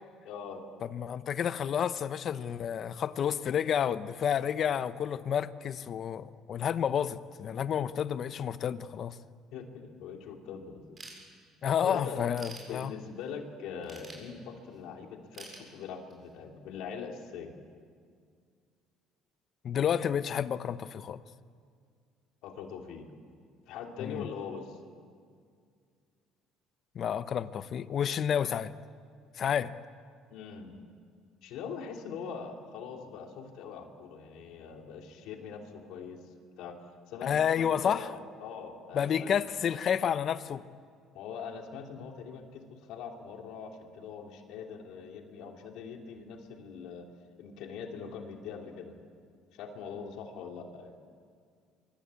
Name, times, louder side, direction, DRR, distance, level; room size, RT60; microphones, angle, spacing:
voice 1, 0.2-0.6 9.5-11.0 11.8-12.2 12.5-17.5 22.4-23.1 23.7-24.8 30.3-30.8 31.4-36.8 37.1-39.7 41.1-47.0 47.4-49.0 49.5-50.9, left 6 dB, 75° left, 3.0 m, -42 dB
voice 2, 0.8-9.2 11.6-12.9 19.6-21.2 24.0-24.2 26.9-28.7 29.4-29.7 37.2-38.1 38.9-40.6, left 8 dB, 45° left, 0.9 m, -30 dB
Ratchet pawl / Tools, 11.0-11.8 12.1-13.3 13.8-14.8 15.3-16.3, right 3 dB, 35° right, 7.4 m, -48 dB
25.0 x 23.5 x 8.4 m
cardioid pair, 115°, 0 cm